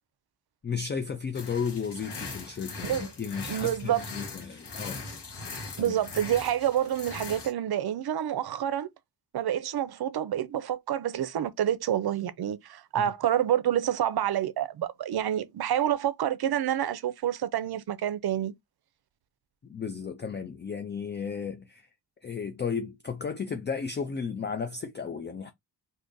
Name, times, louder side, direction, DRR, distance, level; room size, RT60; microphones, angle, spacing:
voice 1, 0.6-5.0 5.8-5.9 13.0-13.1 19.6-21.9 22.2-25.5, left 6 dB, 30° left, 0.4 m, -34 dB
sound 1, 1.3-7.5, left 3 dB, 85° left, 1.2 m, -40 dB
voice 2, 3.5-4.0 5.8-8.9 9.3-18.5, right 11 dB, 70° right, 0.5 m, -28 dB
3.6 x 2.7 x 2.6 m
wide cardioid pair, 105°, 40 cm